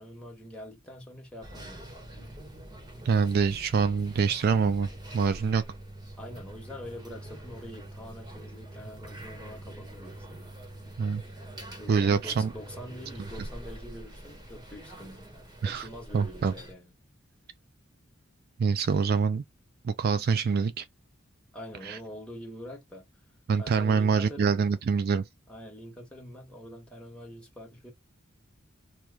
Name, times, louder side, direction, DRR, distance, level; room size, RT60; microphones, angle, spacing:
voice 1, 0.0-1.9 6.2-10.5 11.8-15.3 15.6-16.9 21.5-23.1 23.6-24.5 25.5-27.9, equal, 5° left, 1.2 m, -45 dB
sound 1, 1.4-16.7, right 1 dB, 20° right, 1.0 m, -44 dB
voice 2, 3.1-5.6 11.0-11.2 11.9-12.5 15.6-15.9 16.1-16.5 18.6-19.4 19.8-20.9 21.8-22.0 23.5-25.3, right 5 dB, 50° right, 0.3 m, -25 dB
3.0 x 2.2 x 3.6 m
head